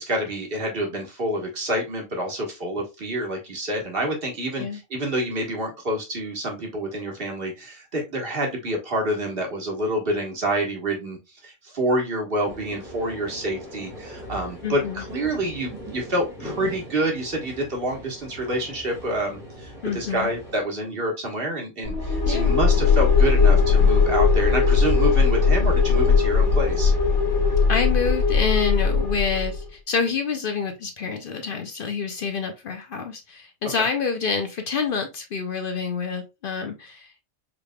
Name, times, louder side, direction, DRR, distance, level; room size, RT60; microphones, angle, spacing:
voice 1, 0.0-26.9, right 1 dB, 50° right, 1 dB, 1.5 m, -27 dB
sound 1, 12.4-20.6, equal, ahead, 1.5 m, -40 dB
voice 2, 14.6-15.0 19.8-20.3 22.2-22.5 27.7-37.3, left 5 dB, 55° left, 6 dB, 0.7 m, -27 dB
sound 2, 21.8-29.6, left 5 dB, 80° left, 1.8 m, -19 dB
5.0 x 3.3 x 2.2 m, 0.25 s
omnidirectional pair, 1.2 m